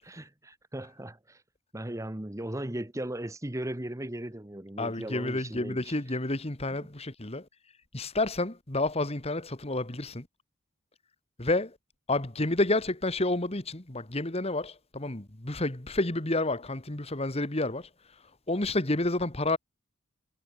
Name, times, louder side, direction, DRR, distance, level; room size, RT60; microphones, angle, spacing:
voice 1, 0.0-1.4 1.7-6.0, right 1 dB, 15° right, 1.1 m, -37 dB
voice 2, 4.8-7.5 7.9-10.3 11.4-11.8 12.1-17.9 18.5-19.6, left 2 dB, 30° left, 1.8 m, -30 dB
head